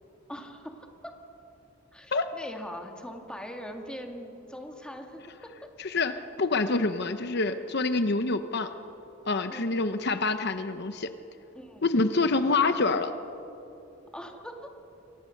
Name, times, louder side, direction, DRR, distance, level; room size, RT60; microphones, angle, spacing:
voice 1, 0.3-1.1 1.9-5.7 9.5-9.8 11.5-11.8 14.1-14.7, equal, 5° left, 3 dB, 2.2 m, -42 dB
voice 2, 5.8-8.7 9.3-11.1 11.8-13.1, left 3 dB, 60° left, 9 dB, 0.9 m, -26 dB
28.0 x 23.5 x 6.6 m, 3.0 s
head